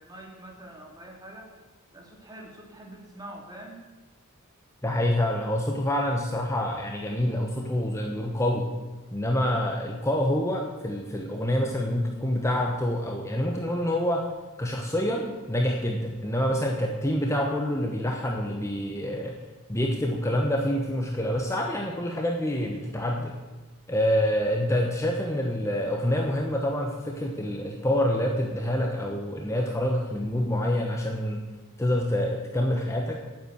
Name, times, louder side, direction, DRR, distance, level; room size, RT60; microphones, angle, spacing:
voice 1, 0.0-1.5 1.9-3.8, right 1 dB, 20° right, 1 dB, 2.4 m, -45 dB
voice 2, 4.8-8.7 9.1-14.2 14.6-19.3 19.7-23.3 23.9-31.4 31.8-33.2, left 1 dB, 15° left, 1 dB, 1.1 m, -27 dB
9.2 x 8.5 x 9.3 m, 1.2 s
head